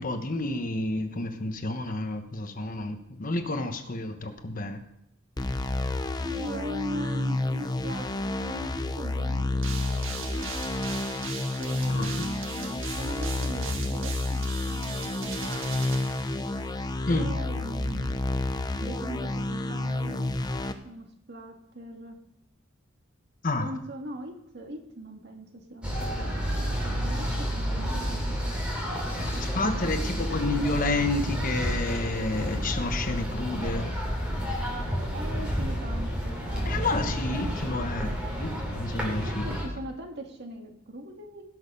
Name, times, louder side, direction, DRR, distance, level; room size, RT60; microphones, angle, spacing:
voice 1, 0.0-4.8 11.9-12.3 17.1-17.3 23.4-23.7 29.3-33.9 36.6-38.1 38.4-39.5, left 2 dB, 40° left, 7 dB, 1.1 m, -30 dB
sound 1, 5.4-20.7, left 2 dB, 20° left, 0.7 m, -30 dB
voice 2, 6.2-10.5 11.6-15.8 17.1-18.2 18.7-20.3 20.8-22.2 23.6-28.5 29.5-30.6 35.1-38.2 39.3-41.4, right 1 dB, 55° right, 3 dB, 1.9 m, -41 dB
sound 2, 9.6-16.9, right 6 dB, 80° right, 1.5 m, -40 dB
sound 3, 25.8-39.7, equal, 5° right, 3.5 m, -30 dB
17.5 x 6.4 x 5.5 m, 0.78 s
head